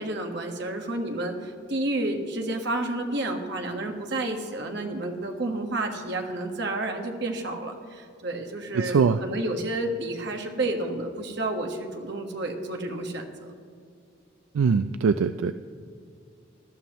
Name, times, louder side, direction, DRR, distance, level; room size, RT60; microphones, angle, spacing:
voice 1, 0.0-13.3, right 2 dB, 55° right, 3 dB, 1.4 m, -30 dB
voice 2, 8.7-9.2 14.5-15.5, right 5 dB, 80° right, 10 dB, 0.4 m, -22 dB
19.5 x 12.5 x 3.1 m, 2.4 s
head